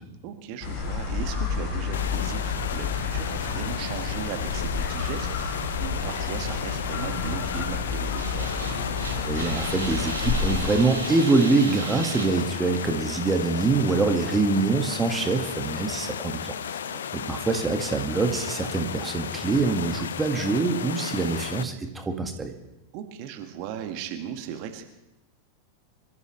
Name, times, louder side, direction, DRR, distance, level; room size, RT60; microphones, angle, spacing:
voice 1, 0.2-8.5 16.8-17.2 22.9-24.8, right 9 dB, 45° right, 5 dB, 1.7 m, -37 dB
sound 1, 0.6-10.8, left 5 dB, 40° left, 7.7 m, -30 dB
sound 2, 1.9-21.6, left 8 dB, 65° left, 0.7 m, -34 dB
sound 3, 8.2-13.2, right 3 dB, 75° right, 5.8 m, -36 dB
voice 2, 9.2-16.5 17.3-22.5, right 3 dB, 15° right, 4 dB, 1.8 m, -24 dB
26.5 x 14.5 x 3.2 m, 0.91 s
figure-of-eight pair, 90°, 0 cm